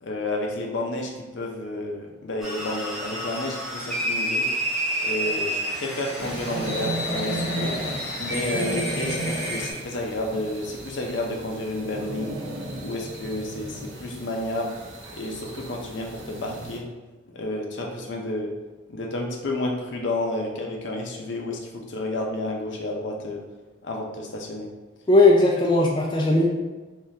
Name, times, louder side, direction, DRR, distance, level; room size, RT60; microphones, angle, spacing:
voice 1, 0.0-4.5 5.0-7.7 8.2-12.4 12.8-14.7 15.1-16.8 17.3-18.5 18.9-23.4 23.8-24.7, left 2 dB, 70° left, 1 dB, 0.6 m, -31 dB
sound 1, 2.4-9.7, equal, ahead, 0.8 m, -30 dB
sound 2, 6.2-16.8, right 1 dB, 80° right, 0.6 m, -34 dB
voice 2, 25.1-26.5, left 2 dB, 25° left, -2 dB, 0.3 m, -17 dB
3.5 x 3.2 x 2.7 m, 1.3 s
head